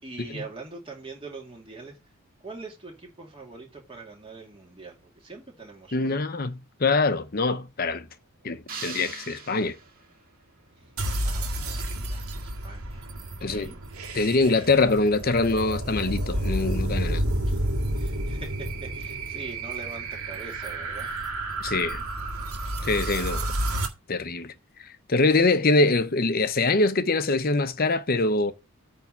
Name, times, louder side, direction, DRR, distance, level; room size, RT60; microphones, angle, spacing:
voice 1, 0.0-2.0 2.4-6.2 10.8-10.9 11.2-13.8 17.5-17.6 17.9-21.2 23.3-23.7, right 3 dB, 25° right, 2.5 m, -43 dB
voice 2, 5.9-8.1 8.4-9.7 13.4-13.7 14.1-17.2 21.6-22.0 22.8-23.5 24.1-24.5 24.8-28.5, left 3 dB, 40° left, 0.8 m, -24 dB
sound 1, 8.7-10.2, right 5 dB, 40° right, 1.9 m, -40 dB
sound 2, 11.0-23.9, right 1 dB, 75° right, 1.8 m, -30 dB
9.0 x 3.6 x 6.9 m
head